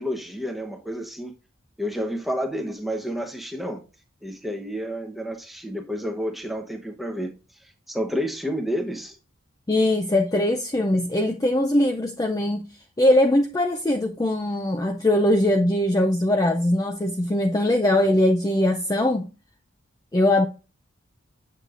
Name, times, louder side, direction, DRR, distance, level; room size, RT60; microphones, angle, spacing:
voice 1, 0.0-1.3 1.8-3.8 4.2-9.2, equal, ahead, 0.8 m, -30 dB
voice 2, 9.7-12.7 13.0-19.3 20.1-20.5, left 1 dB, 15° left, 0.4 m, -21 dB
8.1 x 6.4 x 2.5 m
head